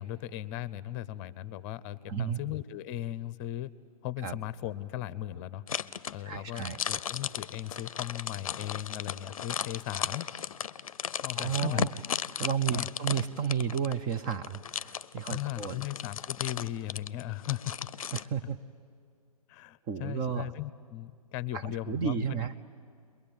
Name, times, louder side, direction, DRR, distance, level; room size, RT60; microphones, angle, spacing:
voice 1, 0.0-3.7 4.0-5.6 6.1-10.3 11.2-11.9 12.3-12.9 15.3-17.7 19.5-22.4, left 13 dB, 25° left, 17 dB, 0.8 m, -37 dB
voice 2, 2.1-2.4 4.2-4.4 6.2-6.8 11.3-11.9 12.4-15.8 18.1-18.6 19.9-20.5 21.5-22.5, right 7 dB, 20° right, 10 dB, 0.7 m, -32 dB
sound 1, 5.7-18.3, left 8 dB, 60° left, 0.6 m, -36 dB
29.5 x 22.0 x 8.9 m, 2.2 s
figure-of-eight pair, 130°, 20 cm